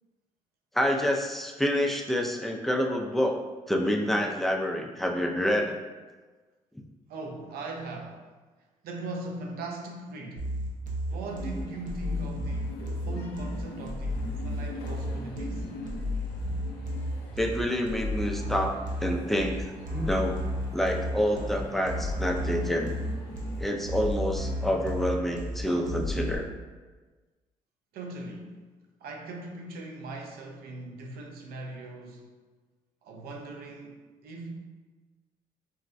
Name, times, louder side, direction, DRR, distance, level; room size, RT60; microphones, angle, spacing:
voice 1, 0.7-3.4 3.7-5.7 17.4-19.6 19.9-20.4 20.7-23.0 23.6-26.5, equal, ahead, 1 dB, 0.4 m, -27 dB
voice 2, 7.1-8.3 8.8-10.5 11.1-12.7 13.0-15.7 27.9-28.6 29.0-32.3 33.0-34.0 34.2-34.6, right 2 dB, 80° right, 2 dB, 0.5 m, -39 dB
sound 1, 10.4-26.4, equal, 55° right, 0.8 m, -33 dB
sound 2, 11.2-23.6, left 2 dB, 85° left, 0.6 m, -44 dB
4.0 x 2.1 x 2.5 m, 1.3 s
cardioid pair, 85°, 16 cm